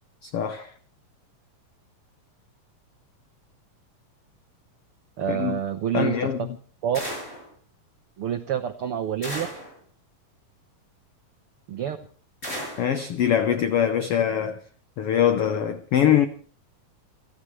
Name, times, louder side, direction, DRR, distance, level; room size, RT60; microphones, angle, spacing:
voice 1, 0.2-0.7 5.3-5.6 5.9-6.5 12.8-14.6 15.0-16.3, left 9 dB, 90° left, 1.2 m, -23 dB
voice 2, 5.2-6.3 6.8-7.0 8.2-9.5 11.7-12.0, right 9 dB, 85° right, 1.2 m, -27 dB
sound 1, 6.9-7.5 9.2-9.7 12.4-12.9, equal, 20° left, 6.9 m, -34 dB
28.0 x 13.0 x 3.2 m
omnidirectional pair, 4.0 m